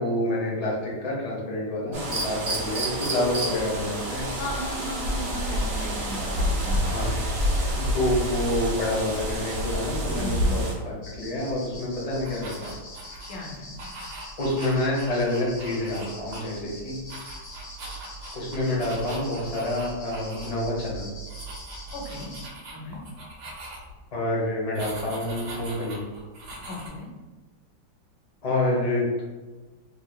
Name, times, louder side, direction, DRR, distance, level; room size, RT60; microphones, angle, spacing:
voice 1, 0.0-4.3 6.9-7.1 7.7-12.8 14.4-17.0 18.3-21.0 24.1-26.0 28.4-29.2, left 1 dB, 45° left, -5 dB, 0.5 m, -28 dB
sound 1, 1.9-10.7, equal, 55° right, 0.7 m, -28 dB
voice 2, 4.4-6.8 10.2-10.6 13.3-13.9 21.9-22.3 22.7-23.0 26.7-27.1, left 1 dB, 90° left, -1 dB, 1.5 m, -36 dB
sound 2, 11.0-22.5, right 1 dB, 70° left, 1.3 m, -42 dB
sound 3, 12.1-13.4 13.8-16.7 17.0-20.5 20.8-20.9 21.3-24.0 24.7-26.9, right 1 dB, 70° right, 1.2 m, -42 dB
3.2 x 3.0 x 2.3 m, 1.3 s
omnidirectional pair, 2.1 m